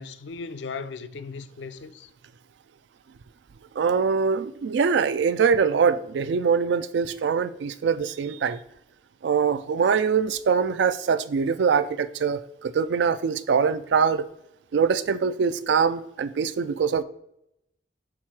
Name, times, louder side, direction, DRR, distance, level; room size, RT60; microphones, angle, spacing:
voice 1, 0.0-2.1, left 4 dB, 80° left, 0.4 m, -37 dB
voice 2, 3.8-8.6 9.2-14.3 14.7-17.0, right 6 dB, 75° right, 0.4 m, -23 dB
6.0 x 3.7 x 4.6 m
head